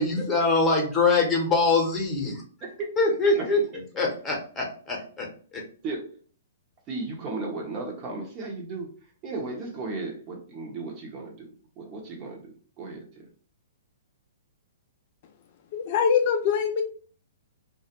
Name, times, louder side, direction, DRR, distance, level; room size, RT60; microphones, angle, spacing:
voice 1, 0.0-2.4 3.0-3.6 3.9-5.3 5.5-5.6, left 3 dB, 20° left, -1 dB, 0.9 m, -23 dB
voice 2, 2.6-2.9 3.4-3.5 5.8-6.2 6.9-8.9 9.2-11.5 11.8-13.3, right 3 dB, 30° right, 1 dB, 0.8 m, -35 dB
voice 3, 15.7-16.8, left 7 dB, 50° left, 5 dB, 0.3 m, -23 dB
2.2 x 2.1 x 2.8 m, 0.43 s
hypercardioid pair, 125°, 0 cm